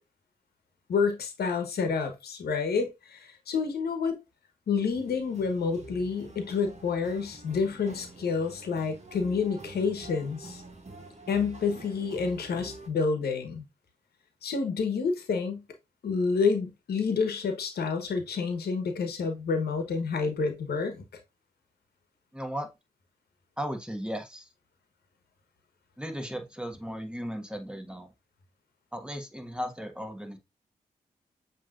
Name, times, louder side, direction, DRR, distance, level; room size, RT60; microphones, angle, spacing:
voice 1, 0.9-4.2 4.7-10.6 11.3-13.6 14.4-15.6 16.0-21.0, left 5 dB, 85° left, 1.1 m, -29 dB
sound 1, 4.8-12.9, right 2 dB, 45° right, 1.5 m, -47 dB
voice 2, 22.3-22.7 23.6-24.5 26.0-28.1 28.9-30.4, equal, 5° right, 1.4 m, -36 dB
7.1 x 3.0 x 2.5 m
cardioid pair, 45°, 16 cm